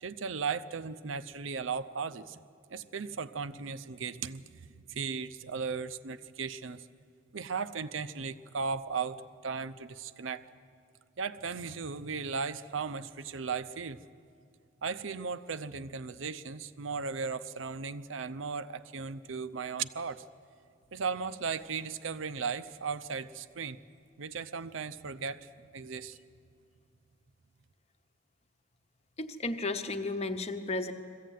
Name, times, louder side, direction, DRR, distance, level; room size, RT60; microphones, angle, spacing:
voice 1, 0.0-2.4 2.7-6.9 7.3-10.4 11.2-14.0 14.8-20.2 20.9-23.8 24.2-26.2, right 5 dB, 80° right, 12 dB, 0.7 m, -36 dB
voice 2, 29.2-30.9, left 2 dB, 35° left, 8 dB, 1.0 m, -33 dB
21.5 x 15.0 x 9.2 m, 2.3 s
head